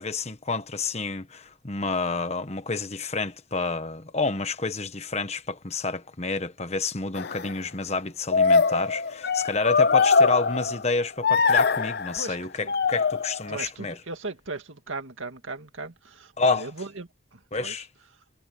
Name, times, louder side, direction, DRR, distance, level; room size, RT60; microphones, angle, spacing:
voice 1, 0.0-12.5 12.9-14.0 16.4-16.6 17.5-17.9, left 3 dB, 30° left, 1.3 m, -29 dB
sound 1, 7.2-7.5 8.3-11.0 11.2-12.2 12.7-13.6, left 5 dB, 50° left, 0.6 m, -22 dB
voice 2, 12.2-12.7 13.5-17.8, right 3 dB, 75° right, 2.1 m, -37 dB
head